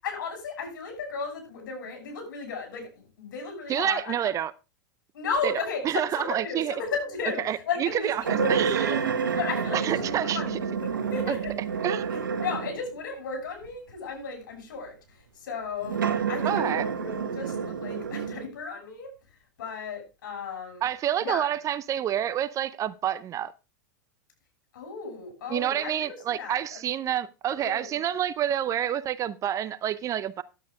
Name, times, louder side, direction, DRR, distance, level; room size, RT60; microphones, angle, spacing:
voice 1, 0.0-4.2 5.1-9.0 9.4-10.8 11.1-11.5 12.4-14.9 15.4-16.0 16.3-19.1 19.6-20.9 21.2-21.6 24.7-26.8 27.5-28.0, left 4 dB, 70° left, 7.0 m, -34 dB
voice 2, 3.7-4.5 5.4-5.5 5.9-6.7 7.4-9.0 9.7-10.4 11.3-11.4 11.8-12.3 16.4-16.9 20.8-23.5 25.5-30.4, right 10 dB, 30° right, 0.7 m, -28 dB
sound 1, 8.2-12.9 13.6-13.7 15.8-18.4, right 6 dB, 90° right, 1.5 m, -29 dB
11.0 x 8.7 x 3.6 m
hypercardioid pair, 105°, 11 cm